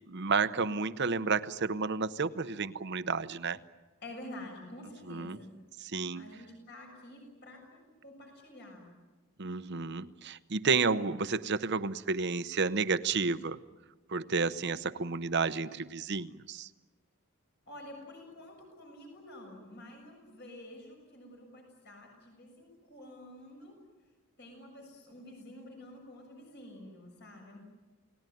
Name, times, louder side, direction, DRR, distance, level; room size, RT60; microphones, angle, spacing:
voice 1, 0.1-3.6 5.1-5.4 5.8-6.2 9.4-13.6 14.1-16.7, right 4 dB, 50° right, 13 dB, 0.8 m, -31 dB
voice 2, 4.0-5.6 6.1-8.9 15.5-15.8 17.7-23.8 24.4-27.6, left 1 dB, 50° left, 1 dB, 7.0 m, -49 dB
29.5 x 18.5 x 9.3 m, 1.2 s
head